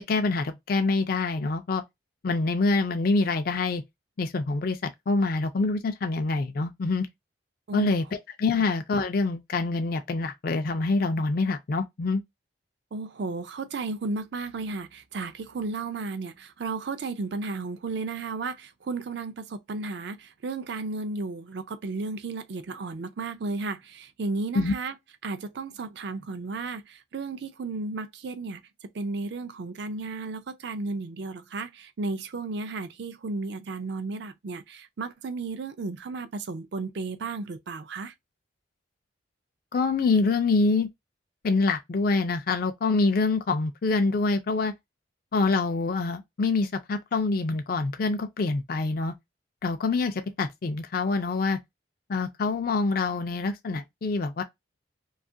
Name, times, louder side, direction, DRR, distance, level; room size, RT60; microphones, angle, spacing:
voice 1, 0.1-1.8 2.2-3.8 4.2-7.1 7.7-12.2 24.5-24.7 39.7-40.9 41.4-44.7 45.3-49.1 49.6-51.6 52.1-54.4, left 3 dB, 45° left, 0.4 m, -26 dB
voice 2, 12.9-25.0 25.2-38.1, right 3 dB, 55° right, 0.4 m, -34 dB
2.8 x 2.4 x 2.6 m
head